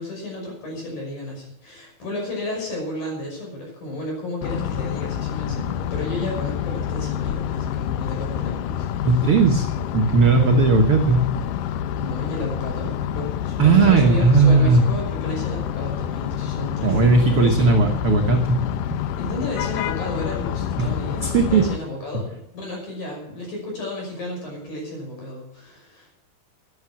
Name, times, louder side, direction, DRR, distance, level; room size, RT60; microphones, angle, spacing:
voice 1, 0.0-8.9 12.0-17.7 19.2-26.2, left 1 dB, 50° left, 0 dB, 7.0 m, -33 dB
sound 1, 4.4-21.8, left 10 dB, 80° left, 2.1 m, -27 dB
voice 2, 9.0-9.7 9.9-11.3 13.6-14.8 16.8-18.6 20.8-20.9 21.2-21.7, right 3 dB, 65° right, 2 dB, 1.4 m, -17 dB
13.5 x 11.0 x 6.1 m, 0.84 s
omnidirectional pair, 4.4 m